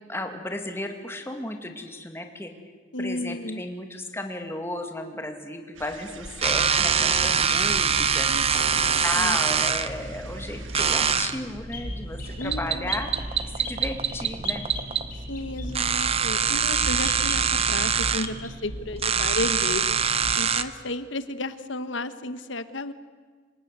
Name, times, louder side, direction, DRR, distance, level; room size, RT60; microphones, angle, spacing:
voice 1, 0.1-2.5 3.0-8.3 8.7-13.1 13.6-14.6, left 1 dB, 15° left, 5 dB, 2.2 m, -34 dB
voice 2, 2.9-3.6 8.3-9.4 12.4-13.0 15.3-20.0 20.4-22.9, left 2 dB, 70° left, 12 dB, 1.3 m, -33 dB
sound 1, 5.7-11.2, right 4 dB, 85° right, 1.5 m, -44 dB
sound 2, 6.4-20.6, right 6 dB, 30° right, 0.9 m, -25 dB
sound 3, 6.8-8.7 10.7-11.2 11.7-11.9 12.2-12.6 12.9-16.1 16.7-18.0 18.2-18.5, left 5 dB, 45° left, 6.7 m, -41 dB
27.0 x 18.5 x 8.2 m, 1.5 s
head